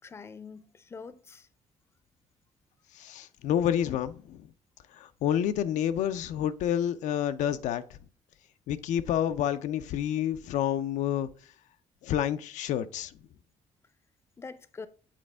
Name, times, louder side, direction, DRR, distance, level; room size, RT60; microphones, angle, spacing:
voice 1, 0.0-1.5 14.4-14.9, left 4 dB, 20° left, 0.5 m, -44 dB
voice 2, 3.0-4.4 4.9-7.8 8.7-11.3 12.0-13.1, left 10 dB, 90° left, 0.5 m, -29 dB
7.5 x 4.2 x 3.3 m
cardioid pair, 140°, 12 cm